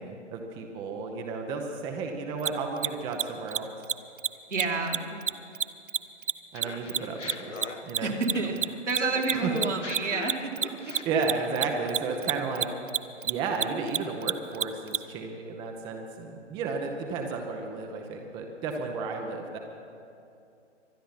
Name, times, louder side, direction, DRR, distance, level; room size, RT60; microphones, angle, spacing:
voice 1, 0.0-3.7 6.5-7.6 7.8-8.1 9.3-9.5 11.0-12.7 13.2-19.6, right 4 dB, 15° right, 3 dB, 0.8 m, -33 dB
Mechanisms, 2.4-2.5 2.8-2.9 3.1-3.2 3.5-3.6 3.8-3.9 4.2-4.3 4.5-4.6 4.9-7.6 7.9-15.0, right 9 dB, 45° right, 0.5 m, -27 dB
voice 2, 4.5-5.2 8.0-10.9, right 3 dB, 75° right, 1 dB, 2.5 m, -29 dB
Laughter, 6.5-8.8 9.1-12.3, left 3 dB, 80° left, 1.6 m, -42 dB
23.5 x 10.0 x 5.6 m, 2.6 s
figure-of-eight pair, 135°, 36 cm